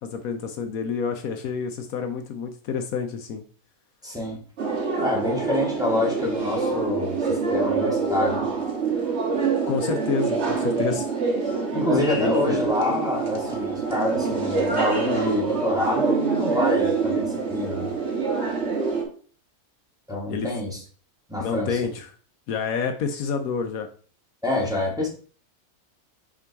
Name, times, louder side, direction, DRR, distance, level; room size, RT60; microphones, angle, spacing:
voice 1, 0.0-3.4 9.7-11.1 12.2-12.6 20.3-20.5 21.4-22.1 22.5-23.9, left 6 dB, 75° left, 6 dB, 1.1 m, -28 dB
voice 2, 4.0-4.4 5.0-8.5 11.7-17.9 20.1-20.8 21.3-21.8 24.4-25.1, left 1 dB, 5° right, -4 dB, 1.8 m, -27 dB
sound 1, 4.6-19.0, right 4 dB, 50° right, 1.7 m, -25 dB
6.2 x 3.8 x 4.6 m, 0.43 s
omnidirectional pair, 1.6 m